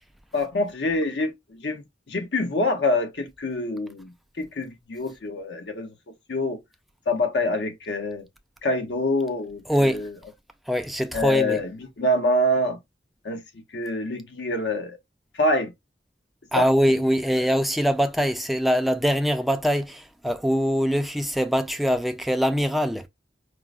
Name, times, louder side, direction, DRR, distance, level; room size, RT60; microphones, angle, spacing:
voice 1, 0.3-6.6 7.1-8.3 8.6-10.1 11.1-12.8 13.2-15.0 15.3-15.7 16.5-16.7, left 1 dB, 70° left, 0.7 m, -26 dB
voice 2, 9.7-10.1 10.7-11.6 16.5-23.1, equal, ahead, 0.3 m, -23 dB
4.6 x 2.0 x 2.4 m
head